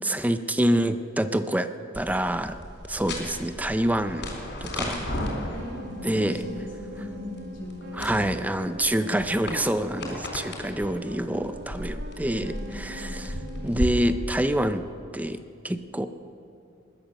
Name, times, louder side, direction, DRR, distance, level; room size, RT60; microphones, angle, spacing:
voice 1, 0.0-2.6 2.9-4.3 4.6-5.0 6.0-6.4 7.9-13.3 13.6-14.8 15.1-16.1, right 1 dB, 10° right, 10 dB, 0.5 m, -26 dB
sound 1, 1.9-13.9, left 1 dB, 60° left, 3.8 m, -36 dB
voice 2, 4.8-8.3 12.5-13.0, left 1 dB, 80° left, -2 dB, 3.5 m, -38 dB
sound 2, 5.2-14.3, equal, 55° right, 1.1 m, -43 dB
20.0 x 10.5 x 6.5 m, 2.6 s
head